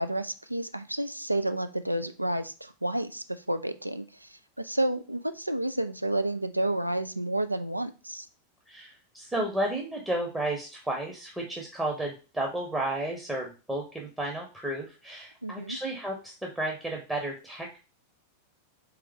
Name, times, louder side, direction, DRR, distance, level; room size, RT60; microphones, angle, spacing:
voice 1, 0.0-8.3 15.4-15.8, right 1 dB, 85° right, 10 dB, 0.3 m, -30 dB
voice 2, 8.7-17.8, right 1 dB, 5° right, 0 dB, 0.7 m, -32 dB
3.4 x 3.2 x 3.4 m, 0.33 s
figure-of-eight pair, 90°, 0 cm